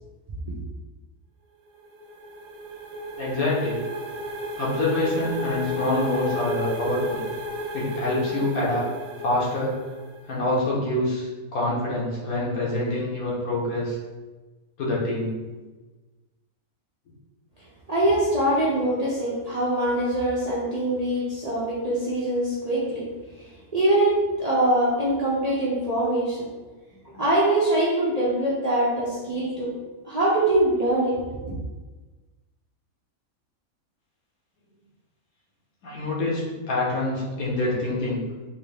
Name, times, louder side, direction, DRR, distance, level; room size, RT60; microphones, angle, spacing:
sound 1, 1.7-10.3, equal, 75° right, 1.0 m, -33 dB
voice 1, 3.2-3.8 4.6-7.2 7.7-8.8 9.2-9.8 10.3-14.0 14.8-15.3 35.8-36.4 36.7-38.2, left 2 dB, 85° left, -5 dB, 1.5 m, -26 dB
voice 2, 17.9-23.1 23.4-23.5 23.7-26.5 27.0-29.7 30.0-31.5, right 1 dB, 45° right, -8 dB, 0.5 m, -23 dB
3.7 x 2.6 x 3.3 m, 1.2 s
omnidirectional pair, 1.5 m